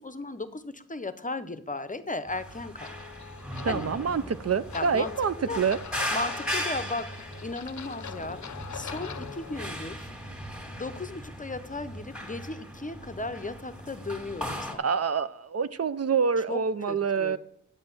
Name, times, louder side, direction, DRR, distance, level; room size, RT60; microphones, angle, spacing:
voice 1, 0.0-2.9 3.7-3.9 4.7-5.1 5.5-5.6 6.1-8.4 8.7-10.1 10.8-14.8 16.5-17.4, left 3 dB, 25° left, 12 dB, 0.7 m, -36 dB
sound 1, 2.3-14.7, equal, 5° right, 1.8 m, -37 dB
sound 2, 2.8-9.7, left 8 dB, 65° left, 0.6 m, -43 dB
voice 2, 3.6-5.8 14.8-17.4, right 6 dB, 50° right, 14 dB, 0.5 m, -26 dB
8.9 x 7.4 x 6.0 m, 0.66 s
wide cardioid pair, 90°, 31 cm